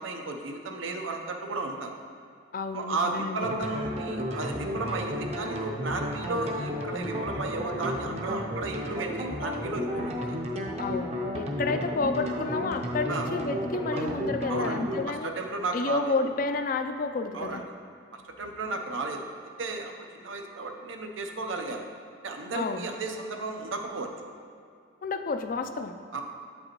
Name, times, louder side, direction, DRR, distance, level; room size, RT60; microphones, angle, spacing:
voice 1, 0.0-2.0 2.7-10.2 13.1-13.3 13.9-14.2 14.5-14.8 15.2-16.1 17.3-17.6 18.4-19.3 19.6-21.9 22.2-24.1 26.1-26.2, right 3 dB, 85° right, 3 dB, 0.6 m, -34 dB
voice 2, 2.5-3.5 10.8-15.3 15.7-17.6 22.5-22.9 25.0-25.9, left 3 dB, 45° left, 8 dB, 0.3 m, -30 dB
sound 1, 3.4-15.0, equal, 35° right, 0.6 m, -33 dB
8.4 x 5.3 x 2.9 m, 2.4 s
head